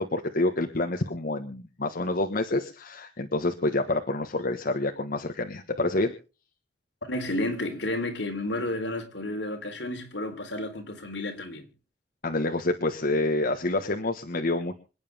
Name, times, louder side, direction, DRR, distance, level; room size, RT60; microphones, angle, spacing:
voice 1, 0.0-6.1 12.2-14.8, left 2 dB, 50° left, 1.4 m, -27 dB
voice 2, 7.0-11.7, left 1 dB, 70° left, 3.7 m, -31 dB
27.0 x 9.3 x 3.5 m
head